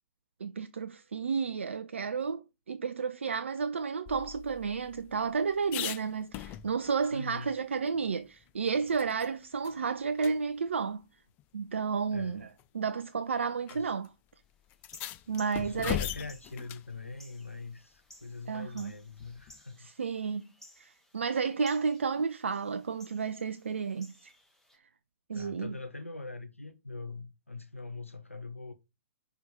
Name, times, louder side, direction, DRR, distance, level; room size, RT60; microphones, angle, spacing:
voice 1, 0.4-2.4 2.7-11.0 11.5-14.1 15.3-16.0 18.5-18.9 19.8-24.3 25.3-25.7, right 5 dB, 65° right, 0.4 m, -32 dB
sound 1, 4.1-7.0 7.4-7.5 7.9-9.3 9.6-9.8 10.2-10.3 11.4-11.5 12.4-12.7 13.7-13.8 14.0-14.1 14.7-16.9 19.2-19.6, left 13 dB, 25° left, 0.4 m, -40 dB
voice 2, 7.1-7.5 12.1-12.4 13.7-14.0 15.6-19.9 25.3-28.7, left 3 dB, 85° left, 0.6 m, -42 dB
sound 2, 14.7-24.8, left 1 dB, 5° left, 1.5 m, -58 dB
5.9 x 3.4 x 5.2 m
figure-of-eight pair, 115°, 7 cm